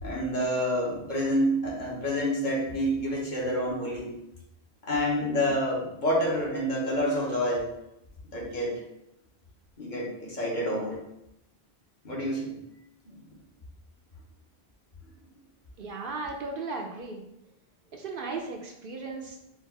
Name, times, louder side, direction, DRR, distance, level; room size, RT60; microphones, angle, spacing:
voice 1, 0.0-4.1 4.8-7.6 8.3-8.7 9.8-11.0 12.0-12.5, equal, 45° left, -4 dB, 1.3 m, -28 dB
voice 2, 15.8-17.2 17.9-19.4, right 3 dB, 60° right, 1 dB, 0.8 m, -36 dB
4.6 x 2.5 x 4.5 m, 0.83 s
omnidirectional pair, 1.1 m